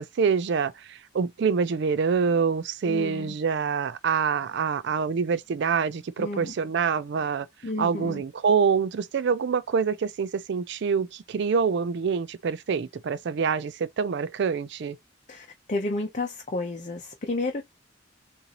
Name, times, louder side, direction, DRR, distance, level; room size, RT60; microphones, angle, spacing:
voice 1, 0.0-7.5 7.8-15.0, right 6 dB, 60° right, 0.4 m, -26 dB
voice 2, 2.8-3.3 6.2-6.5 7.6-8.2 15.3-17.6, left 2 dB, 40° left, 0.7 m, -31 dB
6.9 x 2.6 x 2.9 m
head